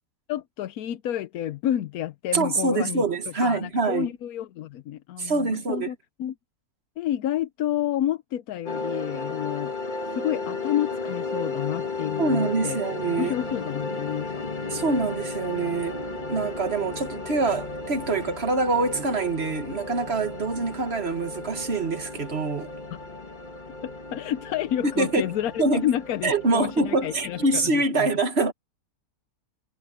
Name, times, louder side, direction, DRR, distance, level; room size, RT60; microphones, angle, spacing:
voice 1, 0.3-3.0 3.4-6.3 7.0-9.7 10.1-12.8 13.2-14.4 23.8-28.1, left 11 dB, 70° left, 1.1 m, -30 dB
voice 2, 2.3-4.1 5.2-5.9 12.2-13.3 14.7-22.7 24.8-25.3 25.6-25.9 26.2-28.5, right 3 dB, 40° right, 1.6 m, -25 dB
sound 1, 8.7-27.7, left 3 dB, 30° left, 1.9 m, -34 dB
omnidirectional pair, 1.7 m